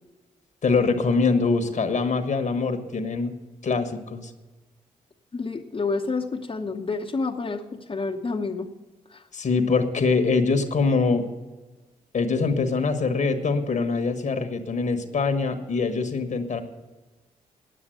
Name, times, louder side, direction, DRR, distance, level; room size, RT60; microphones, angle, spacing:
voice 1, 0.6-3.3 3.6-4.3 9.3-11.3 12.1-16.6, left 4 dB, 55° left, 7 dB, 1.3 m, -23 dB
voice 2, 5.3-8.7 9.1-9.2, left 4 dB, 35° left, 1 dB, 0.9 m, -29 dB
9.4 x 8.9 x 7.8 m, 1.2 s
supercardioid pair, 50°, 15 cm